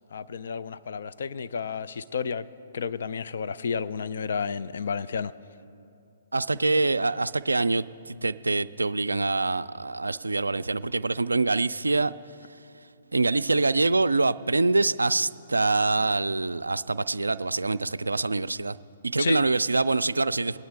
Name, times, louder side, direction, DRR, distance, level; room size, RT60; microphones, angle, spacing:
voice 1, 0.1-2.5 2.7-5.3 19.2-19.4, left 6 dB, 60° left, 0.4 m, -31 dB
voice 2, 6.3-12.1 13.1-18.8 19.0-20.6, right 3 dB, 80° right, 0.3 m, -25 dB
20.5 x 9.3 x 3.3 m
figure-of-eight pair, 125°, 0 cm